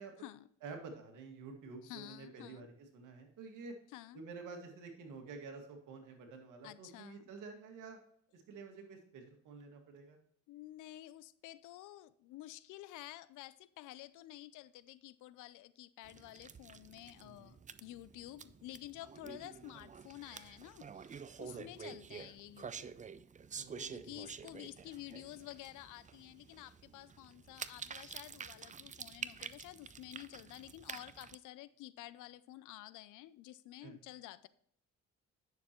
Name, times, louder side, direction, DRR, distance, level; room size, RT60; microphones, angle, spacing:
voice 1, 0.6-2.7 2.9-3.7 4.1-8.0 8.3-10.2 17.2-17.6 21.5-22.0 23.6-24.2 33.8-33.9, right 4 dB, 90° right, 2.0 m, -50 dB
voice 2, 1.8-2.7 3.9-4.2 6.6-7.3 10.5-21.1 21.4-23.0 23.9-34.5, left 15 dB, 90° left, 0.5 m, -51 dB
sound 1, 16.0-31.4, right 6 dB, 25° right, 0.4 m, -49 dB
9.5 x 6.7 x 3.0 m
cardioid pair, 90°, 30 cm